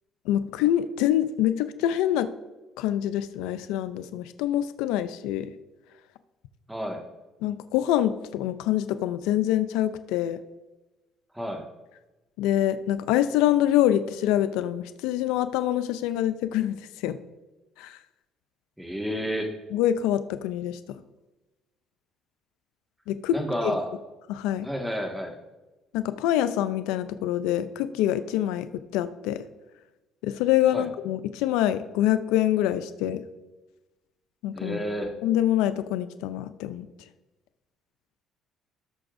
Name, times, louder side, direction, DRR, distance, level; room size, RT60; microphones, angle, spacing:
voice 1, 0.3-2.3 2.8-5.5 7.4-10.4 12.4-17.2 17.8-18.0 19.7-20.8 23.1-23.4 23.6-23.7 24.3-24.7 25.9-28.7 28.9-29.4 30.2-33.2 34.4-34.8 35.2-36.9, left 12 dB, 90° left, 12 dB, 0.4 m, -25 dB
voice 2, 6.7-7.0 11.3-11.6 18.8-19.5 23.3-23.9 24.6-25.4 30.7-30.9 34.5-35.1, equal, 5° right, 2 dB, 1.7 m, -30 dB
16.5 x 6.9 x 2.6 m, 1.1 s
cardioid pair, 90°, 0 cm